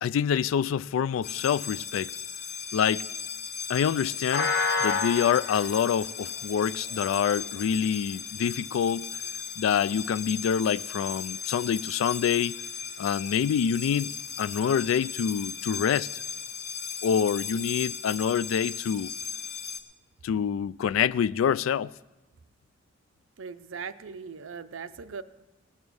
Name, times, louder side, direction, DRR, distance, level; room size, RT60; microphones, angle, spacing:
voice 1, 0.0-2.1 2.7-3.0 3.7-4.5 4.8-9.1 9.6-12.6 13.0-14.1 14.4-16.2 17.0-19.1 20.2-21.9, left 8 dB, 90° left, 0.3 m, -26 dB
sound 1, 1.2-19.8, left 5 dB, 55° left, 0.8 m, -35 dB
voice 2, 23.4-25.2, right 5 dB, 85° right, 0.6 m, -39 dB
18.0 x 7.2 x 6.3 m
head